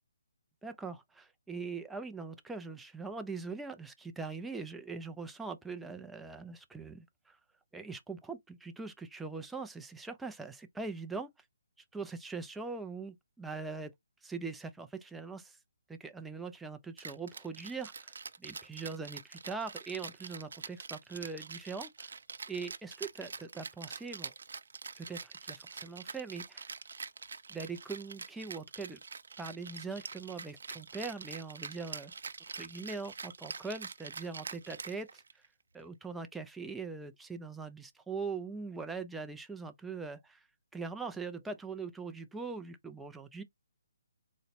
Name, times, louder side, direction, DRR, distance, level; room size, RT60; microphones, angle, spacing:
voice 1, 0.6-7.4 7.7-11.3 11.9-13.9 14.2-15.6 15.9-22.1 22.5-24.3 25.0-26.7 27.5-29.0 29.4-32.1 32.5-35.2 35.7-40.5 40.7-43.4, right 4 dB, 5° right, 0.3 m, -42 dB
Rattle (instrument), 17.0-35.5, right 5 dB, 65° right, 0.5 m, -45 dB
4.0 x 2.0 x 4.1 m
hypercardioid pair, 175°, 0 cm